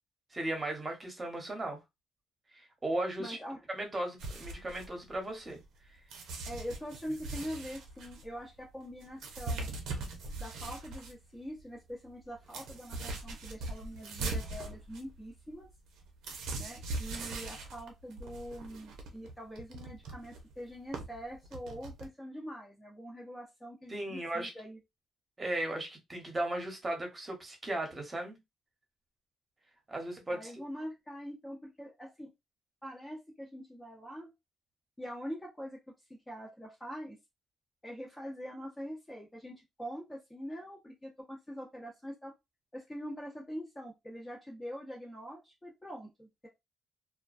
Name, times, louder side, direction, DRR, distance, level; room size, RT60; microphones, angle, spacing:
voice 1, 0.3-1.8 2.5-3.4 3.7-5.6 23.9-24.5 25.4-28.4 29.9-30.5, right 1 dB, 25° right, 0.9 m, -36 dB
voice 2, 3.2-3.6 6.5-9.7 10.4-15.7 16.6-24.8 30.3-32.3 32.8-34.3 35.0-35.8 36.3-37.2 37.8-42.3 42.7-46.5, equal, 15° left, 0.7 m, -44 dB
sound 1, 4.2-5.8 6.1-11.1 11.6-11.7 11.9-22.1, right 2 dB, 80° right, 0.6 m, -41 dB
2.3 x 2.1 x 2.4 m
cardioid pair, 90°, 0 cm